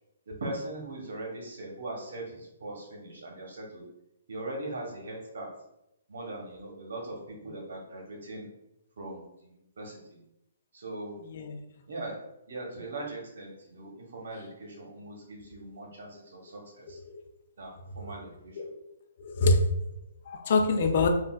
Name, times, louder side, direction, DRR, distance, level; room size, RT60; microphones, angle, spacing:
voice 1, 0.3-3.9 4.3-5.5 6.1-8.5 9.0-10.2 10.7-11.2 11.9-17.0 17.6-18.6, right 2 dB, 75° right, 0 dB, 1.0 m, -40 dB
voice 2, 19.2-19.7 20.3-21.1, left 3 dB, 55° left, 5 dB, 0.4 m, -25 dB
3.7 x 2.4 x 2.3 m, 0.84 s
hypercardioid pair, 155°, 0 cm